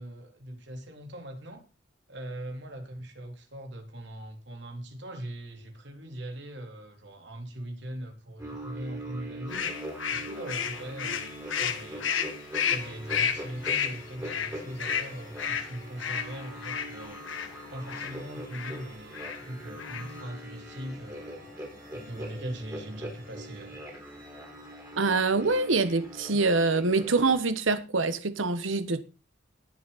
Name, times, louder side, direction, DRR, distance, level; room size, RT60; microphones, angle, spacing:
voice 1, 0.0-1.7 2.1-9.7 10.1-12.1 12.7-17.2 17.7-21.5 21.9-23.8, right 1 dB, 65° right, 3.6 m, -40 dB
sound 1, 8.4-27.3, equal, 15° right, 4.7 m, -43 dB
Mallard Duck Quack Flying Away, 9.5-17.5 17.9-18.2 18.5-18.8 19.1-19.4 19.7-20.2, left 7 dB, 75° left, 1.7 m, -31 dB
sound 2, 9.6-27.7, right 1 dB, 45° right, 7.7 m, -55 dB
voice 2, 25.0-29.0, right 3 dB, 85° right, 1.2 m, -25 dB
20.0 x 7.3 x 4.1 m
head